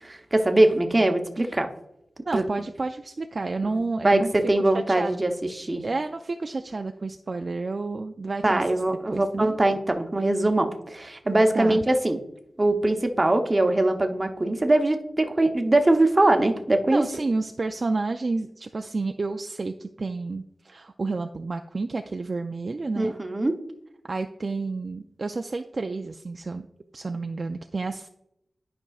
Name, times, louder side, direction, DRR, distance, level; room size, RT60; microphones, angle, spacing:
voice 1, 0.0-1.7 2.3-2.4 3.7-4.2 4.5-5.8 8.4-12.2 12.6-17.0 23.0-23.6, right 2 dB, 25° right, 5 dB, 0.8 m, -22 dB
voice 2, 2.3-4.3 4.7-5.2 5.8-8.6 9.1-9.6 11.5-11.8 16.9-23.1 24.1-26.7 26.9-28.1, right 3 dB, 45° right, 5 dB, 0.3 m, -30 dB
11.5 x 5.3 x 2.3 m, 0.79 s
wide cardioid pair, 125°, 0 cm